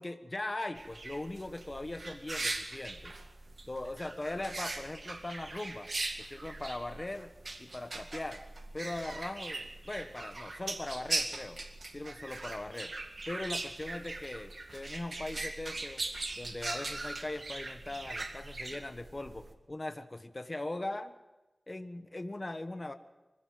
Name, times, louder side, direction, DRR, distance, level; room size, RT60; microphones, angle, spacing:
voice 1, 0.0-3.1 3.7-5.9 6.3-7.3 7.6-8.4 8.7-11.6 11.9-12.9 13.3-16.0 16.4-21.1 21.7-22.9, left 2 dB, 35° left, 8 dB, 1.4 m, -40 dB
sound 1, 0.8-19.5, right 2 dB, 65° right, 2.0 m, -40 dB
24.0 x 15.5 x 7.7 m, 1.1 s
wide cardioid pair, 65°, 0 cm